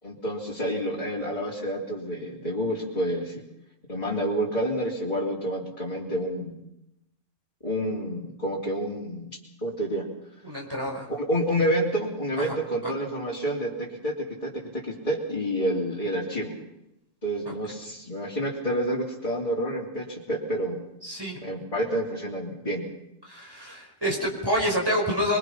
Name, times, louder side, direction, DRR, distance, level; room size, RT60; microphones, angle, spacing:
voice 1, 0.0-3.4 3.9-6.6 7.6-10.1 11.1-16.5 17.2-20.8 21.4-22.9, equal, 25° left, -6 dB, 3.4 m, -29 dB
voice 2, 10.4-11.1 12.4-12.6 12.8-12.9 17.5-17.6 21.0-21.4 23.3-25.4, equal, 15° right, -1 dB, 5.5 m, -28 dB
25.0 x 23.5 x 5.9 m, 0.85 s
omnidirectional pair, 1.3 m